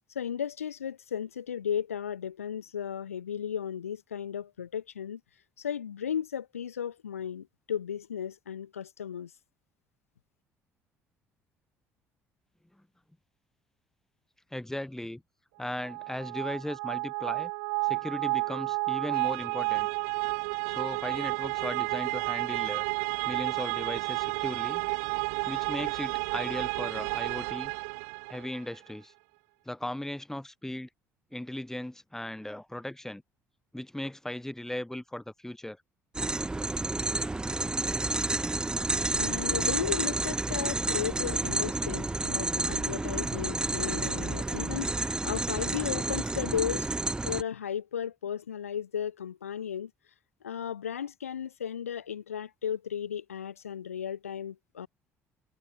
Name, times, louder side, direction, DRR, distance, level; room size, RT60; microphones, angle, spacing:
voice 1, 0.1-5.2 5.6-9.3 39.2-46.9 47.2-49.9 50.4-54.9, left 8 dB, 85° left, 2.3 m, -35 dB
voice 2, 14.5-15.2 15.6-17.5 17.8-19.9 20.7-22.9 23.2-24.9 25.5-27.7 28.3-29.1 29.7-30.9 31.3-33.2 33.7-35.8, left 1 dB, 5° left, 3.4 m, -37 dB
sound 1, 15.8-28.6, right 34 dB, 70° right, 0.5 m, -31 dB
sound 2, 36.1-47.4, right 2 dB, 10° right, 0.3 m, -30 dB
figure-of-eight pair, 55°, 7 cm